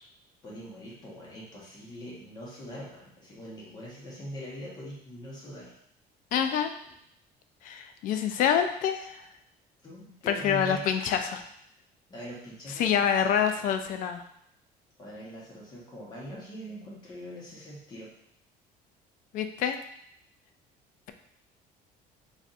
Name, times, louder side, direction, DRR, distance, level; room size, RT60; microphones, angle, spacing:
voice 1, 0.4-5.7 9.8-10.9 12.1-13.7 15.0-18.1, equal, 25° left, -5 dB, 1.1 m, -42 dB
voice 2, 6.3-6.7 7.6-9.2 10.3-11.4 12.7-14.2 19.3-19.8, left 8 dB, 55° left, 7 dB, 0.4 m, -26 dB
4.1 x 3.4 x 2.5 m, 0.73 s
cardioid pair, 160°, 16 cm